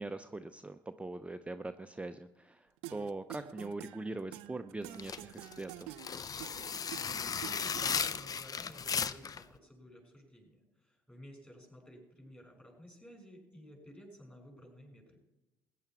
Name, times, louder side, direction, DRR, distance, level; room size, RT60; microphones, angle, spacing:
voice 1, 0.0-5.9, right 2 dB, 10° right, 8 dB, 0.6 m, -42 dB
sound 1, 2.8-8.4, right 15 dB, 65° right, 0.5 m, -48 dB
sound 2, 4.9-9.4, left 6 dB, 35° left, 0.6 m, -36 dB
voice 2, 7.0-15.2, equal, 10° left, 2 dB, 5.7 m, -54 dB
20.5 x 9.9 x 4.6 m, 0.99 s
figure-of-eight pair, 50°, 11 cm